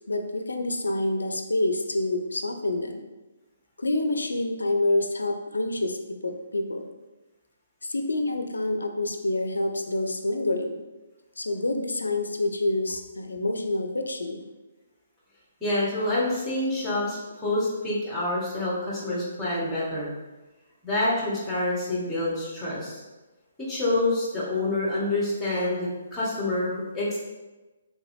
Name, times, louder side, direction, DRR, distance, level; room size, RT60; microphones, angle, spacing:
voice 1, 0.1-3.1 3.8-6.9 7.8-10.8 11.4-14.4, left 2 dB, 80° left, 6 dB, 0.4 m, -27 dB
voice 2, 15.6-20.1 20.8-23.0 23.7-27.2, left 2 dB, 10° left, -6 dB, 1.1 m, -27 dB
3.4 x 2.9 x 2.7 m, 1.2 s
figure-of-eight pair, 135°, 0 cm